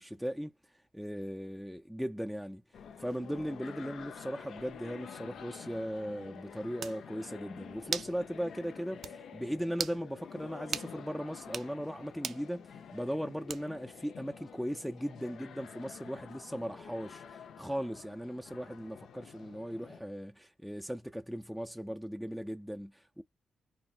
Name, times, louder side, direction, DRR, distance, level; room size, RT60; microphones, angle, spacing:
voice 1, 0.0-23.2, equal, ahead, 0.4 m, -38 dB
sound 1, 2.7-20.0, left 7 dB, 85° left, 0.5 m, -49 dB
sound 2, 6.4-6.5 6.8-7.0 7.9-8.2 8.5-8.6 9.0-9.2 9.7-10.0 10.7-10.9 11.4-11.7 12.2-12.4 13.5-13.8, right 7 dB, 75° right, 0.4 m, -37 dB
3.2 x 2.1 x 4.2 m
cardioid pair, 70°, 0 cm